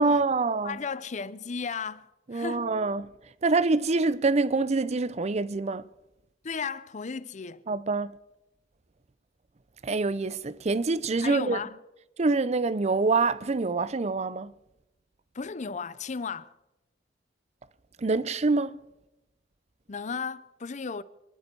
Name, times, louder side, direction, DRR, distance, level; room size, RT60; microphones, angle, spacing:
voice 1, 0.0-0.8 2.3-3.1 3.4-5.8 7.7-8.1 9.8-11.6 12.2-14.5 18.0-18.8, right 3 dB, 40° right, 0.5 m, -25 dB
voice 2, 0.6-2.1 2.3-2.7 6.4-7.6 11.2-11.8 15.3-16.5 19.9-21.0, left 5 dB, 40° left, 0.6 m, -35 dB
26.0 x 11.5 x 4.6 m
head